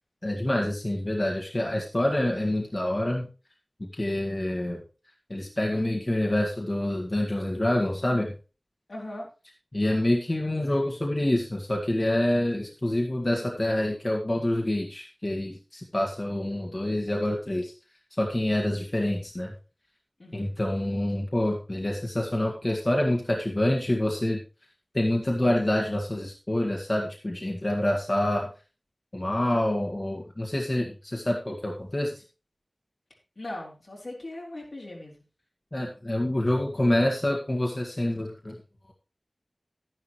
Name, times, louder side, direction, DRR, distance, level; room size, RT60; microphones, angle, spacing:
voice 1, 0.2-3.3 3.9-4.8 5.3-8.3 9.7-17.7 18.1-19.5 20.3-24.4 24.9-28.5 29.1-32.2 35.7-38.6, left 1 dB, 40° left, -1 dB, 1.7 m, -27 dB
voice 2, 8.9-9.3 20.2-20.5 33.4-35.2, left 1 dB, 75° left, -3 dB, 4.1 m, -39 dB
11.5 x 10.5 x 3.1 m, 0.33 s
wide cardioid pair, 60°, 0 cm